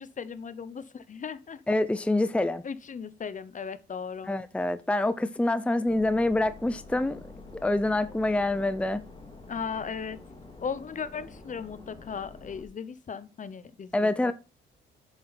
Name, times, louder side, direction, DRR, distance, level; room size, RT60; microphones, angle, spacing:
voice 1, 0.0-1.6 2.6-4.3 9.5-10.2 10.6-14.3, left 6 dB, 40° left, 0.9 m, -37 dB
voice 2, 1.7-2.6 4.3-7.2 7.6-9.0 13.9-14.3, left 2 dB, 5° left, 0.7 m, -26 dB
sound 1, 5.9-12.6, left 3 dB, 25° left, 2.6 m, -47 dB
8.2 x 6.9 x 4.2 m
cardioid pair, 90°, 20 cm